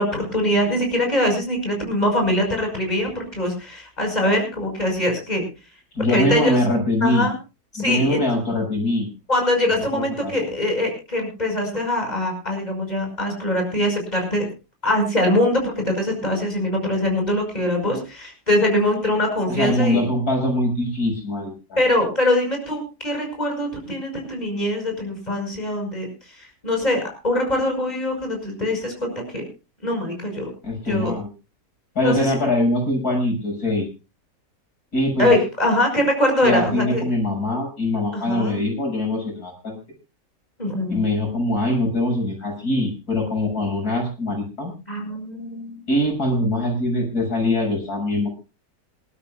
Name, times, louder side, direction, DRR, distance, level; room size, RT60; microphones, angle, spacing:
voice 1, 0.0-5.5 6.1-6.6 7.0-7.3 7.7-8.2 9.3-14.5 14.8-20.0 21.8-29.4 29.8-30.5 30.8-31.1 32.0-32.4 35.2-37.1 38.1-38.6 40.6-41.0 44.9-45.8, left 1 dB, 25° left, 2 dB, 5.9 m, -23 dB
voice 2, 5.9-7.3 7.8-9.1 9.9-10.3 19.5-21.9 30.6-31.3 32.0-33.9 34.9-35.3 36.4-39.8 40.9-44.7 45.9-48.3, left 1 dB, 90° left, 1 dB, 7.1 m, -23 dB
27.0 x 13.0 x 2.3 m, 0.31 s
omnidirectional pair, 1.6 m